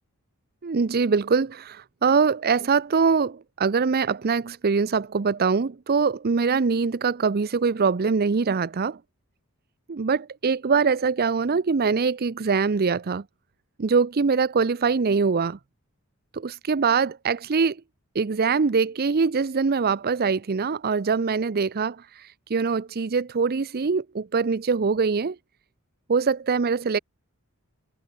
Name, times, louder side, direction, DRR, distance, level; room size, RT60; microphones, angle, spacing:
voice 1, 0.6-9.0 9.9-13.2 13.8-15.6 16.3-17.8 18.1-25.4 26.1-27.0, right 5 dB, 45° right, 0.5 m, -23 dB
head